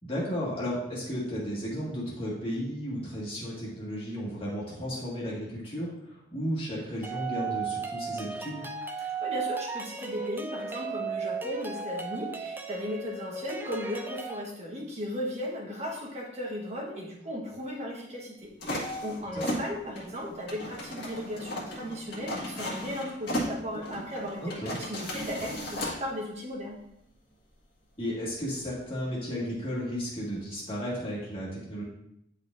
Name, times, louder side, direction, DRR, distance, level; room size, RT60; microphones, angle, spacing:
voice 1, 0.0-8.7 19.3-19.4 24.4-24.8 28.0-31.8, equal, 30° left, -6 dB, 1.8 m, -34 dB
sound 1, 7.0-14.4, right 5 dB, 10° right, 0.4 m, -35 dB
voice 2, 9.0-26.8, equal, 35° right, -1 dB, 1.4 m, -36 dB
sound 2, 18.6-26.0, equal, 55° left, 1.7 m, -35 dB
9.6 x 4.3 x 2.6 m, 0.77 s
head